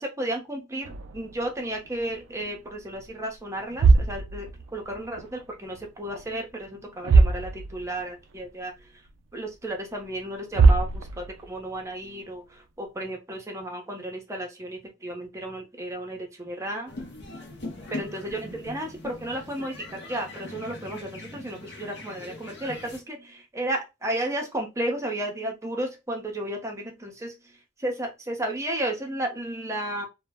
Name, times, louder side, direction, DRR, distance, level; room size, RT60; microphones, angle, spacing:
voice 1, 0.0-8.9 9.3-16.9 17.9-27.3 27.8-30.1, right 1 dB, 15° right, 1 dB, 0.6 m, -33 dB
sound 1, 0.8-2.5 2.8-3.1 3.6-5.4 5.7-6.4 6.6-6.7 7.0-8.0 8.4-8.5 9.1-9.2 10.2-10.3 10.5-11.5, right 4 dB, 65° right, 0.4 m, -22 dB
sound 2, 16.9-23.0, left 2 dB, 55° left, 0.6 m, -41 dB
2.1 x 2.0 x 3.4 m, 0.24 s
head